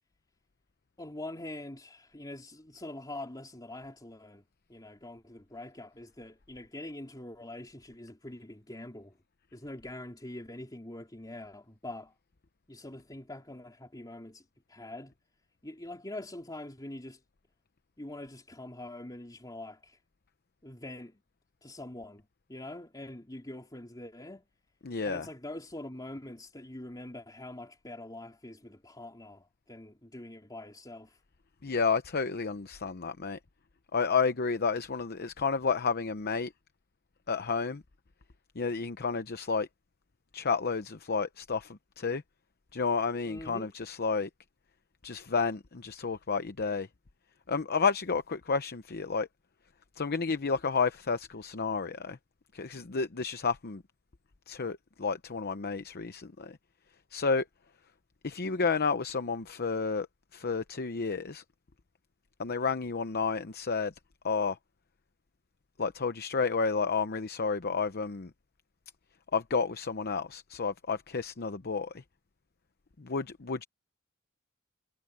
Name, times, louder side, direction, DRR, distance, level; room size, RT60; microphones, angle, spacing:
voice 1, 1.0-4.4 4.7-9.2 9.5-12.1 12.7-15.1 15.6-17.2 18.0-20.0 20.6-21.2 21.6-22.2 22.5-24.4 25.0-31.2 43.3-43.7, left 1 dB, 20° left, 3.3 m, -44 dB
voice 2, 24.8-25.3 31.6-33.4 33.9-36.5 37.3-37.8 38.6-39.7 40.3-42.2 42.7-44.3 45.0-46.9 47.5-49.3 50.0-52.2 52.5-53.8 54.5-56.6 57.1-57.4 58.2-60.1 60.3-61.4 62.4-63.9 64.2-64.6 65.8-68.3 69.3-72.0 73.0-73.6, left 5 dB, 45° left, 0.8 m, -31 dB
head